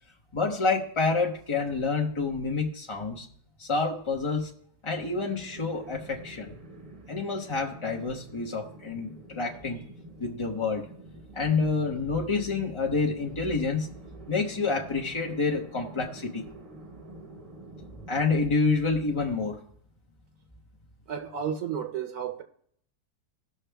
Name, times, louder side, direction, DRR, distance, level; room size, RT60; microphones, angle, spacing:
voice 1, 0.3-3.3 3.6-4.5 4.8-6.6 7.1-9.8 10.2-10.9 11.3-13.9 14.3-16.4 18.1-19.6, left 4 dB, 30° left, 0.6 m, -28 dB
sound 1, 5.1-18.4, right 2 dB, 25° right, 0.8 m, -48 dB
voice 2, 21.1-22.4, right 8 dB, 70° right, 1.2 m, -32 dB
17.5 x 6.1 x 3.4 m
omnidirectional pair, 1.8 m